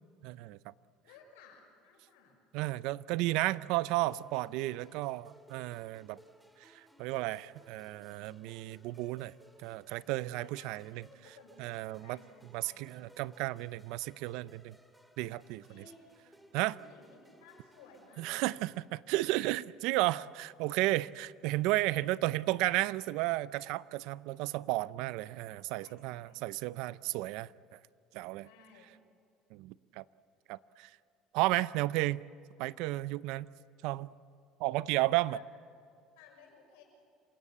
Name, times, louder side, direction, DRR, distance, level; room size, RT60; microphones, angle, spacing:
voice 1, 0.2-0.7 2.5-6.2 6.6-9.3 9.6-11.0 11.6-12.2 12.5-14.7 15.2-15.6 16.5-16.8 18.2-27.8 28.1-28.5 29.5-30.0 30.5-30.9 31.3-32.2 32.6-33.5 33.8-34.1 34.6-35.4, right 18 dB, 75° right, 19 dB, 0.5 m, -33 dB
voice 2, 1.0-2.4 10.5-13.1 15.7-16.0 16.8-18.5 25.8-26.8 28.4-28.9 34.9-35.4 36.2-36.8, left 4 dB, 85° left, 1 dB, 6.4 m, -59 dB
sound 1, 4.1-18.9, equal, 5° right, 2.3 m, -61 dB
27.5 x 16.5 x 8.5 m, 2.3 s
supercardioid pair, 95°, 0 cm